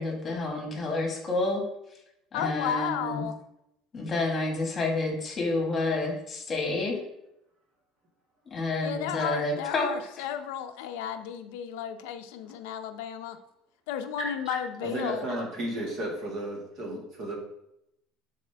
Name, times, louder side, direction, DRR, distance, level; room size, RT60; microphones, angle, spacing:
voice 1, 0.0-1.6 2.3-3.2 3.9-7.0 8.5-9.9, left 2 dB, 25° left, 0 dB, 1.5 m, -29 dB
voice 2, 2.3-3.4 8.8-13.4 13.9-15.2, left 9 dB, 90° left, 8 dB, 0.5 m, -33 dB
voice 3, 14.2-14.6 14.8-17.4, right 1 dB, 40° right, -1 dB, 1.8 m, -33 dB
7.3 x 4.2 x 3.4 m, 0.81 s
cardioid pair, 150°, 0 cm